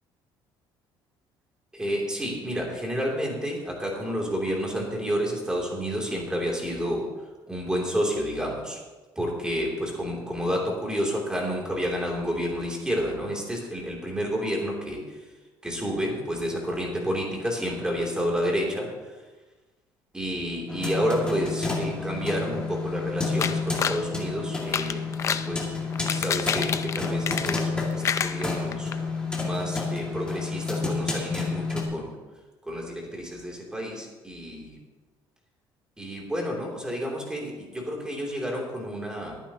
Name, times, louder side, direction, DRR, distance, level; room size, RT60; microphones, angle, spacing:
voice 1, 1.7-7.1 7.5-8.8 9.1-15.2 15.6-19.2 20.1-28.9 29.4-32.1 32.6-34.8 36.0-39.4, equal, 10° right, -2 dB, 2.9 m, -30 dB
sound 1, 20.7-31.8, left 4 dB, 10° left, 2.2 m, -30 dB
sound 2, 23.4-24.0 24.6-25.5 25.9-27.8 28.0-29.0 29.3-29.4 29.7-29.8, left 7 dB, 35° left, 0.5 m, -28 dB
22.5 x 9.2 x 2.9 m, 1.2 s
cardioid pair, 150°, 9 cm